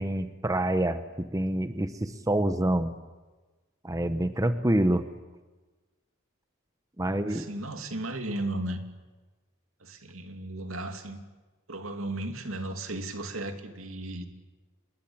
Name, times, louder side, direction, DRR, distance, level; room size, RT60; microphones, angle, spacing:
voice 1, 0.0-2.9 3.8-5.1 7.0-7.4, right 1 dB, 15° right, 10 dB, 0.9 m, -27 dB
voice 2, 7.0-8.8 9.8-11.2 11.7-14.3, right 1 dB, 80° right, 6 dB, 2.6 m, -35 dB
27.0 x 21.5 x 8.8 m, 1.3 s
head